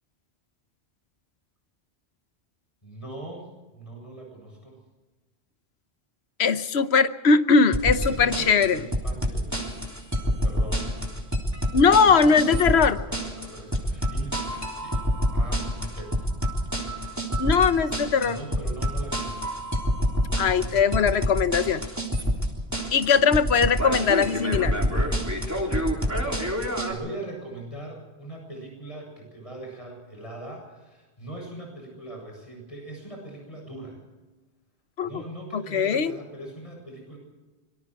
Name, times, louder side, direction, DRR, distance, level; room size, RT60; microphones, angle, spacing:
voice 1, 2.8-4.8 8.1-9.7 10.2-10.9 11.6-14.4 14.8-16.2 17.2-17.8 18.1-19.6 20.3-20.8 24.1-24.4 26.8-34.0 35.0-37.2, right 2 dB, 30° left, 0 dB, 7.9 m, -41 dB
voice 2, 6.4-8.8 11.7-13.0 17.4-18.4 20.4-21.8 22.9-24.7 35.0-35.1 35.5-36.1, left 5 dB, 80° left, 11 dB, 1.2 m, -20 dB
sound 1, 7.7-26.9, equal, 15° right, 3.5 m, -27 dB
26.0 x 23.5 x 4.8 m, 1.2 s
omnidirectional pair, 1.1 m